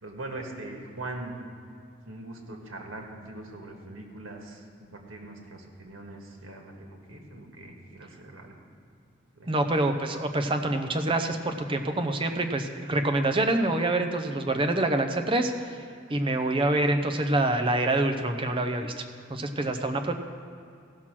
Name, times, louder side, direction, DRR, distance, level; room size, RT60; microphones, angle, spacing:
voice 1, 0.0-1.4 2.0-4.6 4.9-8.5 9.4-9.5, right 2 dB, 85° right, 1 dB, 1.7 m, -41 dB
voice 2, 9.5-15.5 16.1-18.9 19.3-20.1, right 2 dB, 25° right, 6 dB, 0.7 m, -26 dB
15.5 x 6.0 x 6.1 m, 2.4 s
head